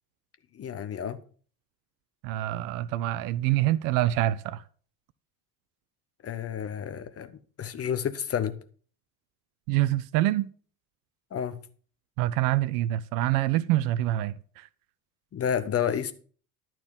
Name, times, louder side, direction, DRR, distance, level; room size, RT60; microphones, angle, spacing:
voice 1, 0.5-1.2 6.2-8.6 11.3-11.5 15.3-16.1, left 8 dB, 30° left, 1.1 m, -30 dB
voice 2, 2.2-4.6 9.7-10.5 12.2-14.7, right 14 dB, 45° right, 0.6 m, -26 dB
12.0 x 4.5 x 7.7 m
figure-of-eight pair, 60°, 47 cm